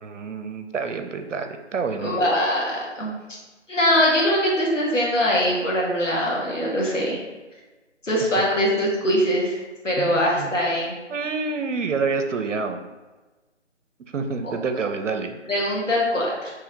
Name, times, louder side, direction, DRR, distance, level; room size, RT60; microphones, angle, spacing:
voice 1, 0.0-2.2 8.5-8.6 10.0-10.5 11.1-12.8 14.1-15.4, right 4 dB, 80° right, 6 dB, 0.6 m, -28 dB
voice 2, 2.0-3.1 3.7-7.2 8.0-9.6 9.8-10.9 15.5-16.5, equal, 85° left, -4 dB, 1.4 m, -22 dB
3.0 x 2.8 x 3.8 m, 1.2 s
figure-of-eight pair, 150°, 37 cm